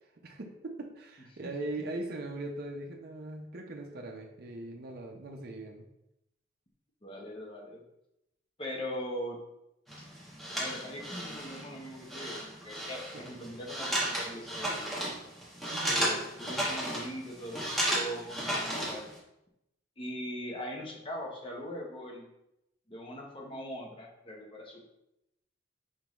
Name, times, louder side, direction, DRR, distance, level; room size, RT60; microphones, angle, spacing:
voice 1, 0.2-5.9 13.1-13.2 15.7-16.1, right 2 dB, 50° right, 1 dB, 0.5 m, -40 dB
voice 2, 7.0-7.8 8.6-9.4 10.0-10.1 10.5-15.0 15.9-19.1 20.0-22.3 22.9-24.9, equal, 25° left, 0 dB, 0.8 m, -41 dB
sound 1, 9.9-19.2, right 1 dB, ahead, 1.1 m, -34 dB
5.1 x 3.5 x 3.0 m, 0.85 s
head